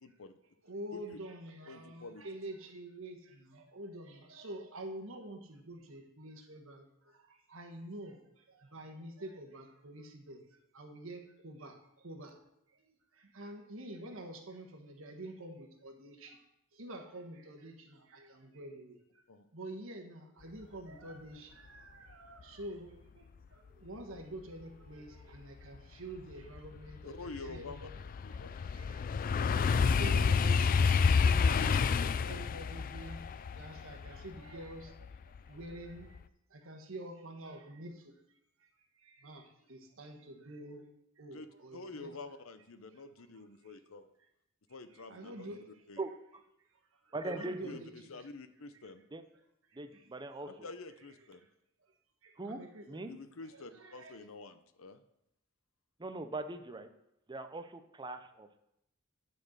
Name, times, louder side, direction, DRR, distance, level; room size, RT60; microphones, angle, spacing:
voice 1, 0.0-0.3 0.9-1.2 1.7-2.2 19.3-19.5 27.0-27.9 28.2-28.5 41.3-41.5 41.7-44.1 44.7-45.5 45.9-46.0 47.2-49.0 50.6-51.5 53.1-55.0, left 3 dB, 85° left, 11 dB, 0.7 m, -48 dB
voice 2, 0.6-10.5 10.7-12.4 12.7-16.4 16.7-19.2 19.5-27.9 28.3-33.3 33.5-36.2 36.5-38.1 38.6-38.7 39.0-40.9 41.2-42.1 42.9-43.0 43.6-43.7 44.9-45.8 47.0-48.3 49.7-50.5 52.2-53.0 53.5-54.2, right 1 dB, 75° right, 3 dB, 1.4 m, -48 dB
sound 1, 25.7-25.8 26.3-35.4 35.8-36.2, left 5 dB, 45° left, 0.3 m, -29 dB
voice 3, 47.1-47.6 49.1-49.2 49.7-50.5 52.4-52.6 52.9-53.1 56.0-56.9 57.3-58.6, right 2 dB, 20° right, 8 dB, 0.6 m, -40 dB
10.5 x 4.4 x 6.4 m, 0.82 s
head